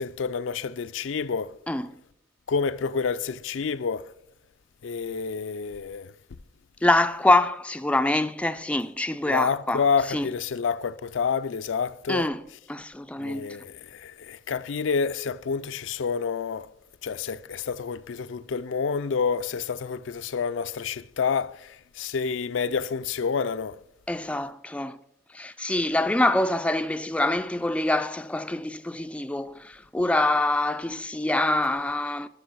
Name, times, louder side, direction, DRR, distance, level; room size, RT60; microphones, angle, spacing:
voice 1, 0.0-1.5 2.5-4.1 4.8-6.1 9.3-12.3 13.2-16.7 17.0-23.8, left 5 dB, 80° left, 0.4 m, -28 dB
voice 2, 6.8-9.8 10.1-10.3 12.1-12.4 12.7-13.4 24.1-25.0 25.3-32.3, left 2 dB, 5° left, 0.3 m, -25 dB
13.0 x 6.3 x 6.1 m
head